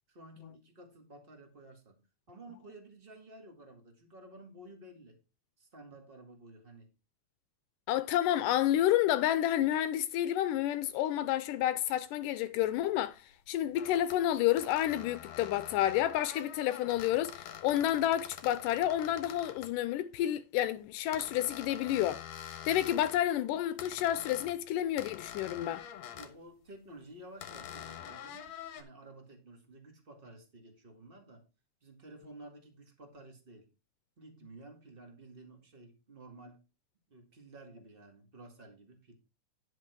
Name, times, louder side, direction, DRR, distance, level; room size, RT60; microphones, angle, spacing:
voice 1, 0.1-2.0 2.3-5.2 5.6-6.9 26.1-31.4 31.8-33.7 34.2-36.6 37.1-39.2, right 2 dB, 20° right, 1.5 m, -53 dB
voice 2, 7.9-13.2 13.5-22.2 22.7-25.8, left 12 dB, 80° left, 2.0 m, -30 dB
sound 1, 12.9-13.0 13.7-14.2 14.6-19.7 21.1-23.2 23.8-24.6 25.0-26.3 27.4-28.8, left 9 dB, 60° left, 2.1 m, -46 dB
10.5 x 6.1 x 4.5 m
omnidirectional pair, 4.0 m